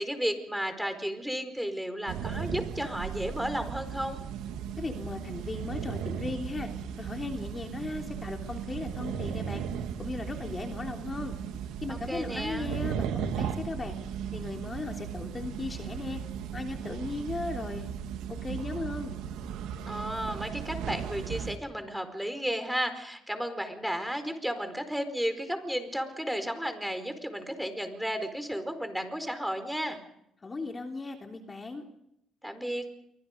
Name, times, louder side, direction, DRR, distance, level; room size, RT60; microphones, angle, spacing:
voice 1, 0.0-4.2 11.9-12.7 19.9-30.0 32.4-32.8, equal, ahead, 9 dB, 4.6 m, -33 dB
sound 1, 2.1-21.6, right 8 dB, 90° right, 2.1 m, -36 dB
voice 2, 4.8-6.7 7.0-9.6 10.0-11.4 11.8-13.9 14.3-16.2 16.5-17.9 18.3-19.2 30.4-31.8, left 3 dB, 30° left, 3 dB, 3.2 m, -37 dB
28.5 x 25.0 x 5.3 m, 0.78 s
cardioid pair, 80°, 0 cm